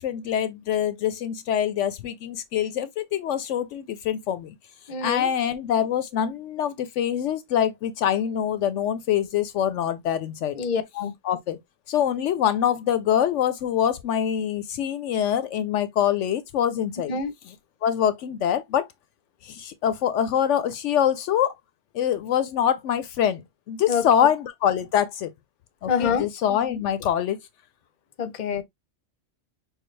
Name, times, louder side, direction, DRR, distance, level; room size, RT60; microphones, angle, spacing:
voice 1, 0.0-4.5 5.0-10.5 11.2-11.6 11.9-17.1 17.8-18.9 19.4-21.5 21.9-25.3 25.8-27.4, left 9 dB, 75° left, 0.9 m, -24 dB
voice 2, 4.9-5.3 10.5-11.1 17.1-17.3 23.9-24.0 25.9-26.3 28.2-28.6, left 6 dB, 45° left, 0.8 m, -26 dB
6.4 x 2.2 x 3.2 m
omnidirectional pair, 1.3 m